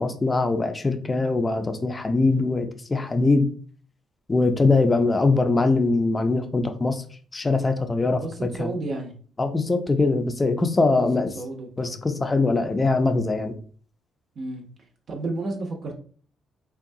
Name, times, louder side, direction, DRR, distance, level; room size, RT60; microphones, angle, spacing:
voice 1, 0.0-3.5 4.3-7.0 7.3-8.7 9.4-11.3 11.8-13.5, left 3 dB, 25° left, 7 dB, 0.5 m, -22 dB
voice 2, 8.2-9.1 11.0-11.1 11.3-11.9 14.4-14.7 15.1-15.9, right 2 dB, 55° right, 2 dB, 0.7 m, -31 dB
3.7 x 2.3 x 2.6 m, 0.44 s
cardioid pair, 90°, 0 cm